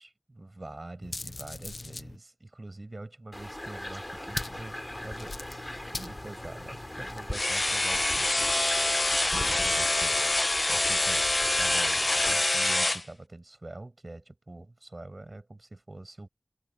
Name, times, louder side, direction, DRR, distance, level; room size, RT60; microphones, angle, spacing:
voice 1, 0.0-5.4 5.9-8.6 9.3-11.3 11.6-16.3, right 2 dB, 55° right, 6.7 m, -45 dB
sound 1, 1.0-2.2 4.3-7.3, left 3 dB, 85° left, 0.8 m, -41 dB
sound 2, 3.3-12.3, left 1 dB, 20° left, 3.6 m, -39 dB
sound 3, 7.3-13.0, left 2 dB, 50° left, 1.0 m, -26 dB
wide cardioid pair, 50°, 0 cm